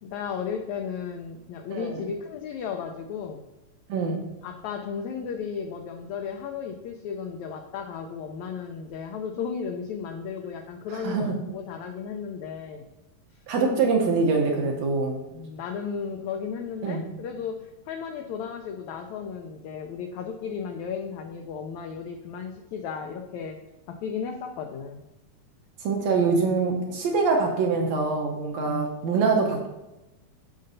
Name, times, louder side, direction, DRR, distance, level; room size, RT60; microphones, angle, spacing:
voice 1, 0.0-3.4 4.1-12.9 15.3-23.6 23.9-25.0 28.6-29.1, left 6 dB, 90° left, 4 dB, 1.6 m, -34 dB
voice 2, 1.7-2.1 3.9-4.2 10.9-11.3 13.5-15.2 16.8-17.0 25.8-29.7, right 4 dB, 70° right, 1 dB, 1.7 m, -24 dB
13.5 x 5.3 x 2.7 m, 0.99 s
omnidirectional pair, 3.9 m